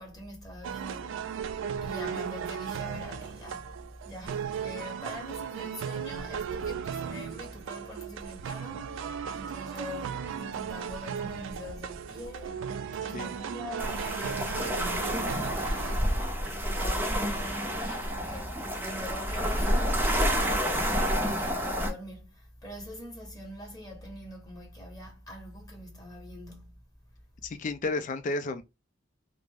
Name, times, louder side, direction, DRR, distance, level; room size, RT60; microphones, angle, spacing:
voice 1, 0.0-1.3 1.8-12.7 13.0-20.1 21.1-26.8, left 1 dB, 20° left, 0.9 m, -43 dB
sound 1, 0.6-16.0, right 7 dB, 65° right, 0.3 m, -36 dB
sound 2, 13.8-21.9, equal, 10° right, 0.6 m, -29 dB
voice 2, 27.4-28.6, left 3 dB, 40° left, 0.4 m, -32 dB
2.5 x 2.0 x 3.3 m
head